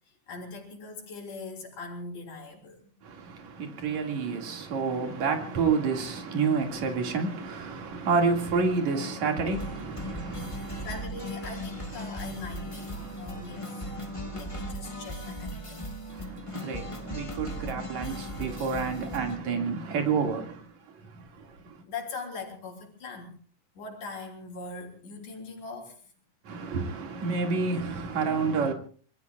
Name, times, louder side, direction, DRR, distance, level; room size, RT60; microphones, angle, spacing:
voice 1, 0.1-2.9 10.8-12.9 13.2-13.8 14.3-15.9 21.9-23.3 23.8-26.0, left 3 dB, 75° left, 4.8 m, -41 dB
voice 2, 3.0-10.9 12.0-12.1 13.0-14.7 16.1-21.8 26.4-28.7, right 4 dB, 65° right, 3.5 m, -30 dB
sound 1, 9.5-19.4, equal, 25° left, 0.6 m, -38 dB
26.0 x 22.0 x 2.4 m
omnidirectional pair, 3.5 m